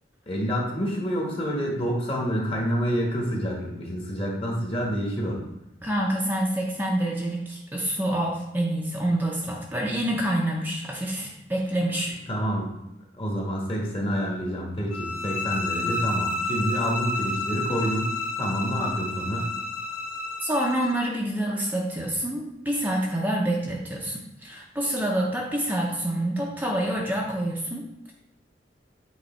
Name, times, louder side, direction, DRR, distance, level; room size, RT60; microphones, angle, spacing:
voice 1, 0.3-5.4 12.3-12.7 13.2-19.5, equal, 30° left, -2 dB, 1.5 m, -28 dB
voice 2, 5.8-12.2 20.4-28.1, right 1 dB, 10° right, -2 dB, 0.7 m, -27 dB
sound 1, 14.9-21.0, left 2 dB, 50° left, 1.0 m, -30 dB
8.0 x 3.1 x 4.4 m, 0.88 s
head